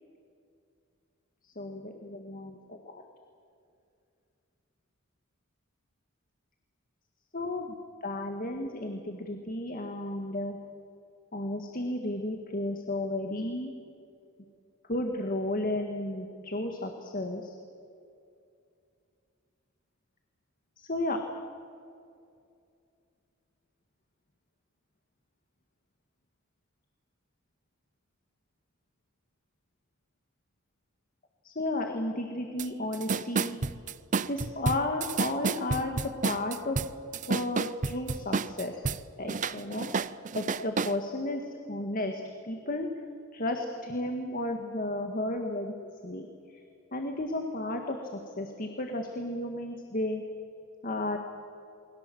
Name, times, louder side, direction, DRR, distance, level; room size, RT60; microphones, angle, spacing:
voice 1, 1.6-3.0 7.3-7.8 8.0-10.6 11.3-13.7 14.9-17.6 20.8-21.2 31.4-33.6 34.3-36.8 37.3-38.8 39.2-39.9 40.3-42.9 43.3-46.3 46.9-48.0 48.4-50.2 50.8-51.2, left 1 dB, 40° left, 4 dB, 1.8 m, -33 dB
sound 1, 32.6-32.7 32.9-39.0 39.3-40.9, right 4 dB, 35° right, 0.6 m, -30 dB
29.0 x 22.0 x 7.8 m, 2.5 s
head